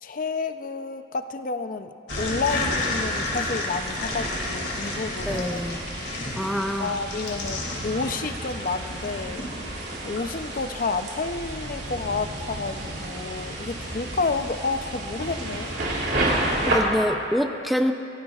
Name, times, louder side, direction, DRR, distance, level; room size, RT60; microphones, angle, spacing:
voice 1, 0.0-5.6 6.8-9.4 10.0-15.7, left 4 dB, 50° left, 9 dB, 0.5 m, -30 dB
sound 1, 2.1-10.7, left 2 dB, 70° left, 2.4 m, -32 dB
sound 2, 2.1-16.8, right 1 dB, 65° right, 2.7 m, -32 dB
voice 2, 5.3-5.8 6.4-6.9 16.7-17.9, equal, ahead, 4 dB, 0.5 m, -25 dB
27.0 x 15.5 x 2.4 m, 2.6 s
head